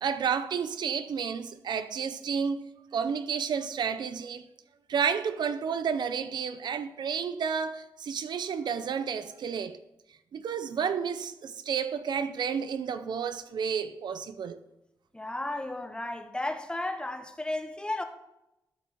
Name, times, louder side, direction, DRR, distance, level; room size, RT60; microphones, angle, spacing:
voice 1, 0.0-2.6 2.9-4.4 4.9-9.8 10.3-14.6, right 6 dB, 75° right, 0.5 m, -31 dB
voice 2, 15.1-18.0, left 2 dB, 10° left, 0.9 m, -34 dB
12.5 x 4.5 x 4.2 m
cardioid pair, 90°, 8 cm